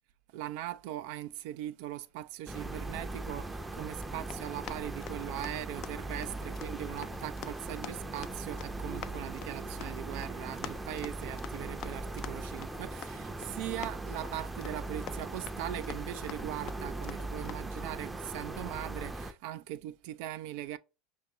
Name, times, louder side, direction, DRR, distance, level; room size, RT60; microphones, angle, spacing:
voice 1, 0.3-20.8, right 13 dB, 65° right, 0.3 m, -40 dB
sound 1, 2.5-19.3, right 2 dB, 10° right, 0.5 m, -39 dB
Run, 3.9-17.6, left 11 dB, 50° left, 0.3 m, -48 dB
5.8 x 2.6 x 2.8 m
hypercardioid pair, 80°, 0 cm